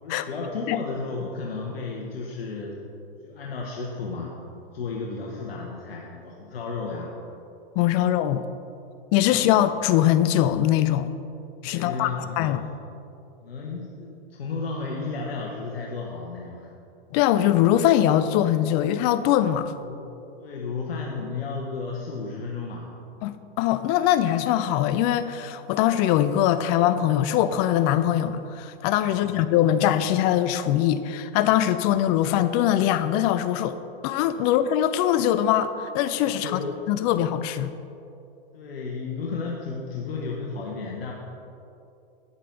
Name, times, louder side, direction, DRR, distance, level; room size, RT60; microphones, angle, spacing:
voice 1, 0.0-2.8 3.2-4.4 4.7-7.1 9.4-9.5 11.7-12.5 13.4-16.7 19.8-20.1 20.4-22.9 29.1-29.3 36.4-36.8 38.5-41.1, left 4 dB, 85° left, -2 dB, 1.1 m, -33 dB
voice 2, 7.8-8.4 9.1-11.1 11.6-12.6 17.1-19.7 23.2-33.8 34.0-36.6 36.9-37.7, left 11 dB, 40° left, 12 dB, 0.5 m, -22 dB
8.7 x 8.3 x 3.9 m, 2.7 s
hypercardioid pair, 115°, 29 cm